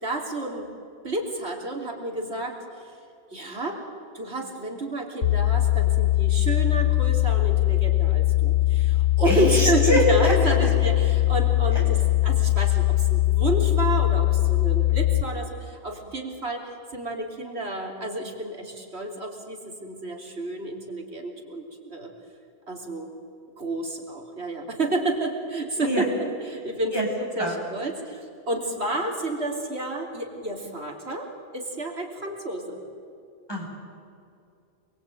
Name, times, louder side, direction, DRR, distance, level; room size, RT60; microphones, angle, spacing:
voice 1, 0.0-0.7 1.0-2.6 3.3-3.8 4.1-12.0 12.2-22.1 22.7-23.1 23.6-27.0 27.4-32.8, right 2 dB, 75° right, 1 dB, 3.6 m, -30 dB
sound 1, 5.2-15.2, left 16 dB, 80° left, 1.4 m, -21 dB
voice 2, 9.2-10.3 10.6-10.7 11.7-11.8 25.8-26.1 26.9-27.1 27.4-27.5 33.5-33.7, left 1 dB, 20° left, -2 dB, 7.1 m, -23 dB
28.0 x 21.5 x 9.1 m, 2.6 s
omnidirectional pair, 1.1 m